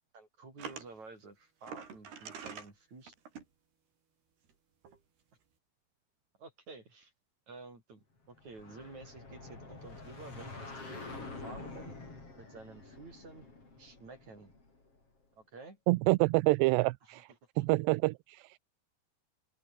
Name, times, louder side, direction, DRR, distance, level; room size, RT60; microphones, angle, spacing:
voice 1, 0.1-3.1 6.4-7.1 7.5-12.0 12.4-13.5 13.8-14.5 15.4-15.8 17.0-17.2, right 3 dB, 40° right, 9.1 m, -51 dB
sound 1, 0.6-0.9 1.6-2.7 3.1-3.5 4.5-4.6 4.9-5.0, right 6 dB, 70° right, 6.3 m, -45 dB
sound 2, 8.4-15.0, left 3 dB, 35° left, 7.5 m, -47 dB
voice 2, 15.9-17.3 17.6-18.6, right 23 dB, 85° right, 2.7 m, -27 dB
omnidirectional pair, 4.9 m